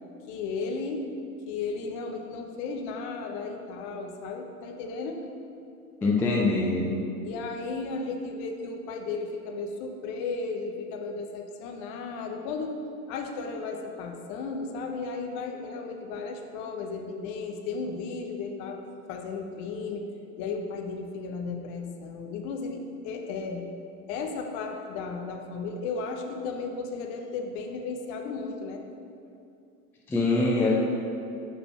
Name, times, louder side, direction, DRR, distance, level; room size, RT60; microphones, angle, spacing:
voice 1, 0.3-1.1 1.5-5.3 7.2-12.8 13.1-18.8 19.1-20.1 20.4-23.7 24.1-28.8, left 4 dB, 40° left, 4 dB, 0.8 m, -34 dB
voice 2, 6.0-6.9 30.1-30.7, left 3 dB, 5° left, -3 dB, 0.4 m, -23 dB
6.2 x 5.0 x 5.8 m, 2.6 s
figure-of-eight pair, 90°, 47 cm